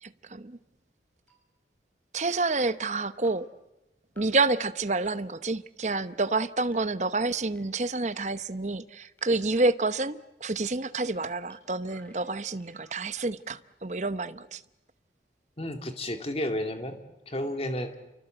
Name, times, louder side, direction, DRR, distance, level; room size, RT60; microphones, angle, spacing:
voice 1, 0.0-0.6 2.1-3.5 4.2-14.6, right 3 dB, 40° right, 0.9 m, -28 dB
sound 1, 1.3-1.4 2.3-2.4 3.2-3.3 4.2-4.3 5.0-5.1 5.9-6.0 6.7-6.8 7.5-7.6 8.4-8.5 9.2-9.3 10.0-10.1 10.7-10.8 11.5-11.6 11.8-13.0, right 2 dB, 10° left, 7.8 m, -56 dB
voice 2, 15.6-17.0 17.3-18.0, left 1 dB, 30° left, 2.4 m, -32 dB
29.5 x 24.0 x 7.9 m
head